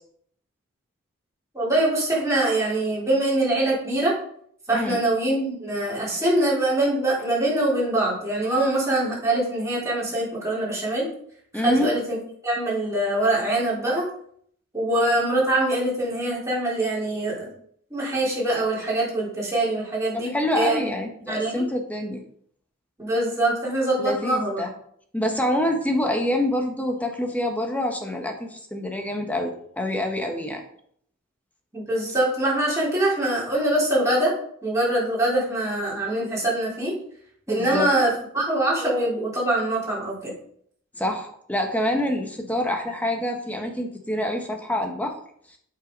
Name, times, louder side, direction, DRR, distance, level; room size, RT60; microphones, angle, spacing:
voice 1, 1.5-4.2 4.7-11.1 11.5-12.0 12.4-14.1 14.7-17.5 17.9-20.8 21.3-21.6 23.0-24.6 31.7-34.3 34.6-37.0 37.5-38.1 38.3-40.3, right 1 dB, 15° right, -7 dB, 3.9 m, -23 dB
voice 2, 11.5-11.9 20.1-22.2 24.0-24.7 25.1-30.6 37.5-37.9 41.0-45.2, left 1 dB, 5° left, 3 dB, 1.2 m, -26 dB
8.2 x 6.0 x 5.3 m, 0.64 s
head